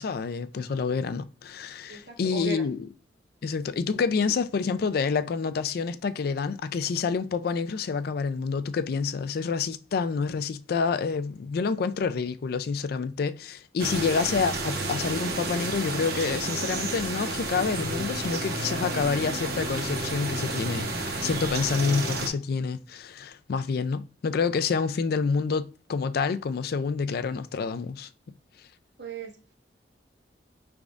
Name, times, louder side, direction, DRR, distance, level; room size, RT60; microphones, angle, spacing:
voice 1, 0.0-2.9 3.4-28.1, left 5 dB, 55° left, 0.3 m, -28 dB
voice 2, 1.9-2.6 29.0-29.5, right 3 dB, 75° right, 1.2 m, -37 dB
sound 1, 13.8-22.3, right 2 dB, 60° right, 0.8 m, -31 dB
5.1 x 3.4 x 2.4 m
head